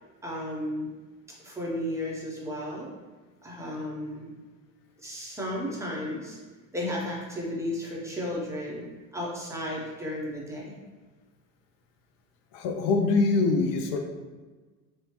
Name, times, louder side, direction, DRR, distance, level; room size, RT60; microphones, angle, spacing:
voice 1, 0.2-0.9 1.4-2.9 3.4-4.3 5.0-6.4 6.7-8.8 9.1-10.8, left 1 dB, 5° right, -4 dB, 0.6 m, -33 dB
voice 2, 12.5-14.0, left 3 dB, 40° left, 4 dB, 0.4 m, -24 dB
3.0 x 2.0 x 2.9 m, 1.3 s
hypercardioid pair, 85°, 45 cm